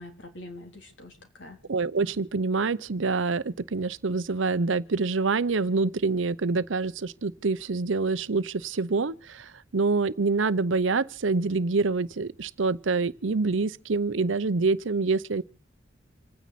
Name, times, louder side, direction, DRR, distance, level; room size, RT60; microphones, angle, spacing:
voice 1, 0.0-1.6, left 2 dB, 75° left, 3.4 m, -44 dB
voice 2, 1.7-15.4, right 4 dB, 80° right, 0.7 m, -26 dB
27.5 x 9.3 x 4.1 m
head